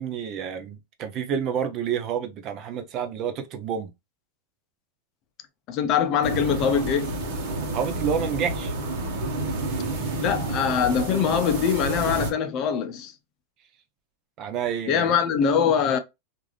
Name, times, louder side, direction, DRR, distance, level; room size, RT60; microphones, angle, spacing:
voice 1, 0.0-3.9 7.7-8.7 14.4-15.1, right 8 dB, 30° right, 0.5 m, -29 dB
voice 2, 5.7-7.2 10.2-13.1 14.9-16.0, left 7 dB, 35° left, 0.5 m, -23 dB
sound 1, 6.2-12.3, right 2 dB, 50° right, 1.0 m, -29 dB
3.2 x 2.5 x 2.3 m
supercardioid pair, 155°, 0 cm